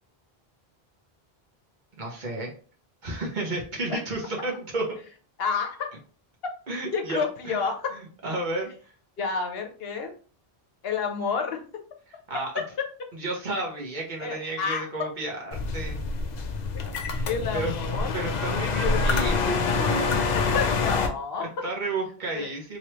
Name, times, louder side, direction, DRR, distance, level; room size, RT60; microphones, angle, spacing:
voice 1, 2.0-2.5 3.0-4.8 6.7-7.6 7.9-8.9 12.3-12.5 13.1-16.0 17.1-17.7 18.1-20.2 21.4-22.8, right 2 dB, 50° right, -1 dB, 1.1 m, -32 dB
voice 2, 5.4-5.9 6.9-7.8 9.2-10.1 10.8-11.6 14.2-14.9 17.2-18.2 18.8-19.0 20.3-21.5 22.3-22.5, left 5 dB, 75° left, 3 dB, 1.0 m, -29 dB
sound 1, 15.5-21.1, left 4 dB, 55° left, 0.6 m, -26 dB
3.1 x 3.0 x 2.9 m, 0.40 s
omnidirectional pair, 1.0 m